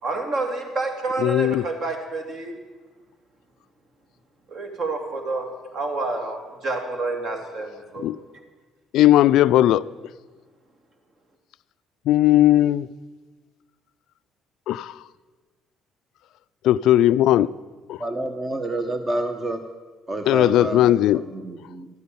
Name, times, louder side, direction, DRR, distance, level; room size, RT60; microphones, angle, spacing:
voice 1, 0.0-2.5 4.5-5.5 5.7-8.1, right 3 dB, 50° right, 2.8 m, -28 dB
voice 2, 1.2-1.6 8.0-8.2 8.9-9.8 12.1-12.9 14.7-14.9 16.6-17.5 17.9-18.0 20.3-21.2, left 13 dB, 75° left, 0.3 m, -17 dB
voice 3, 18.0-19.6 20.1-20.9 21.1-21.9, right 2 dB, 25° right, 1.0 m, -28 dB
13.5 x 9.6 x 8.7 m
cardioid pair, 120°, 0 cm